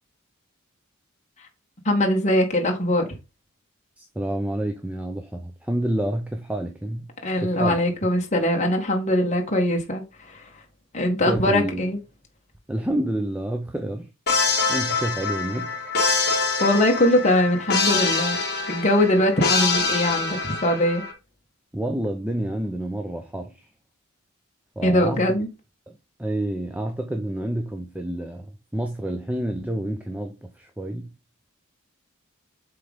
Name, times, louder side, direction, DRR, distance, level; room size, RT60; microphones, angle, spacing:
voice 1, 1.8-3.1 7.2-10.4 10.9-12.0 16.6-18.4 18.7-21.0 24.8-25.5, left 1 dB, 35° left, 1.6 m, -21 dB
voice 2, 4.0-7.1 7.4-7.8 11.3-11.8 12.7-14.1 14.7-15.8 21.7-23.6 24.8-25.4 26.2-31.1, right 1 dB, 5° right, 0.7 m, -28 dB
sound 1, 14.3-21.1, left 4 dB, 50° left, 1.8 m, -25 dB
7.8 x 3.8 x 3.6 m
head